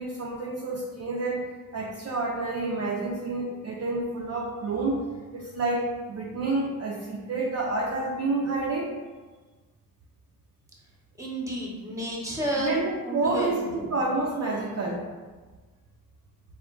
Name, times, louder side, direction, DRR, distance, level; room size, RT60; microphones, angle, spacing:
voice 1, 0.0-1.4 1.7-5.0 5.3-8.9 12.6-13.6 13.9-15.1, right 3 dB, 45° right, -3 dB, 0.5 m, -29 dB
voice 2, 11.2-12.8 13.1-13.9, equal, 10° right, -3 dB, 0.8 m, -31 dB
3.6 x 2.1 x 2.3 m, 1.3 s
cardioid pair, 60°, 35 cm